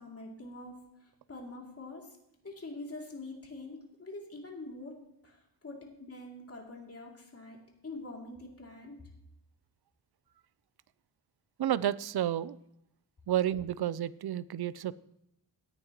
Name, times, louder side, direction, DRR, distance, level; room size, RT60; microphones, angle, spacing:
voice 1, 0.0-2.2 2.4-5.0 5.2-7.6 7.8-9.0, left 2 dB, 35° left, 2.7 m, -45 dB
voice 2, 11.6-12.6 13.3-14.9, right 11 dB, 65° right, 0.5 m, -31 dB
17.0 x 9.6 x 3.0 m
wide cardioid pair, 120°, 42 cm